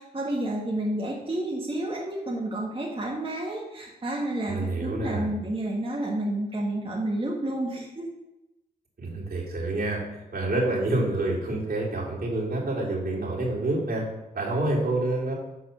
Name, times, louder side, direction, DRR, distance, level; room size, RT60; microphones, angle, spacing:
voice 1, 0.0-8.1, right 1 dB, 30° right, -4 dB, 1.7 m, -30 dB
voice 2, 4.5-5.3 9.0-14.0 14.3-15.3, right 2 dB, 55° right, -4 dB, 3.0 m, -28 dB
7.9 x 4.1 x 5.8 m, 0.96 s
cardioid pair, 55°, 18 cm